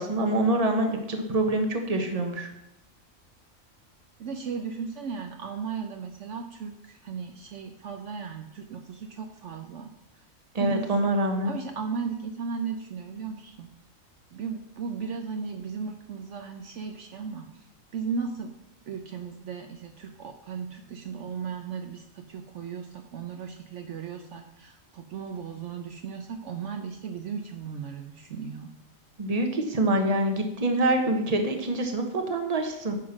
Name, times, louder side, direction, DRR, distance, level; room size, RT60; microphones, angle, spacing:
voice 1, 0.0-2.5 10.5-11.5 29.2-32.9, right 1 dB, 30° right, 4 dB, 1.2 m, -25 dB
voice 2, 4.2-9.9 10.6-11.0 11.4-13.7 14.3-17.5 17.9-18.5 18.9-28.7, right 6 dB, 65° right, 5 dB, 1.0 m, -36 dB
9.4 x 5.8 x 6.0 m, 0.84 s
omnidirectional pair, 1.4 m